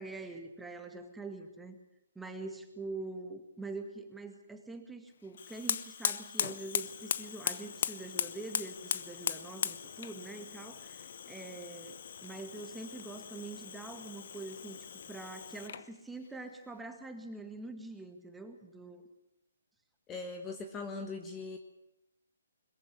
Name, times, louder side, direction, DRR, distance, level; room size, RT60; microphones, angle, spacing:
voice 1, 0.0-1.8 2.2-19.1, right 3 dB, 5° right, 5 dB, 1.9 m, -44 dB
Fire, 5.3-15.9, left 8 dB, 55° left, 0.9 m, -38 dB
voice 2, 20.1-21.6, left 3 dB, 15° left, 5 dB, 1.4 m, -40 dB
21.5 x 14.5 x 9.4 m, 0.82 s
hypercardioid pair, 150°, 0 cm